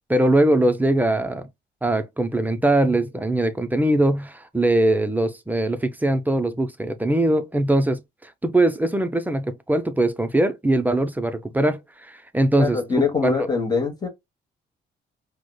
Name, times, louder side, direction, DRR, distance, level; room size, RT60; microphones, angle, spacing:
voice 1, 0.1-1.5 1.8-12.8 13.2-13.5, right 1 dB, 10° right, 0.4 m, -21 dB
voice 2, 12.5-14.1, left 4 dB, 20° left, 1.0 m, -23 dB
4.7 x 2.1 x 2.2 m
cardioid pair, 90°, 20 cm